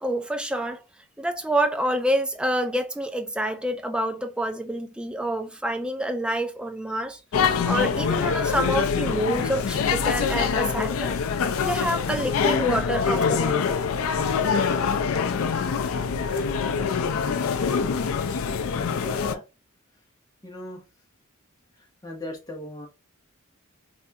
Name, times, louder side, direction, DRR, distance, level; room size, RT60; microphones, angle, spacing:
voice 1, 0.0-0.8 1.2-7.2 7.6-11.1 11.6-13.7, right 1 dB, 5° right, 0.3 m, -27 dB
sound 1, 7.3-19.4, left 6 dB, 70° left, 0.4 m, -24 dB
voice 2, 18.8-19.4 20.4-20.8 21.8-22.9, left 1 dB, 15° left, 0.8 m, -38 dB
3.4 x 2.5 x 2.6 m
head